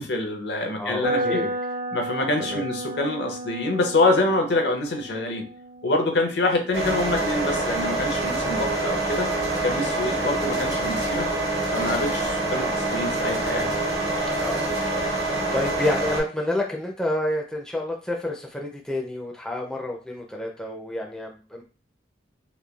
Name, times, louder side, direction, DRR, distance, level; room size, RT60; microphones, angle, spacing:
voice 1, 0.0-1.4 1.9-5.4 5.8-9.3 9.6-11.3 11.7-13.7, left 2 dB, 70° left, 4 dB, 0.6 m, -25 dB
voice 2, 0.8-1.5 2.4-2.6 10.2-10.4 14.4-14.7 15.0-21.6, left 1 dB, 5° left, 0 dB, 0.4 m, -29 dB
sound 1, 1.0-8.9, right 1 dB, 45° right, 0.6 m, -33 dB
sound 2, 6.7-16.2, right 2 dB, 70° right, 1.0 m, -26 dB
3.0 x 2.2 x 2.3 m, 0.35 s
head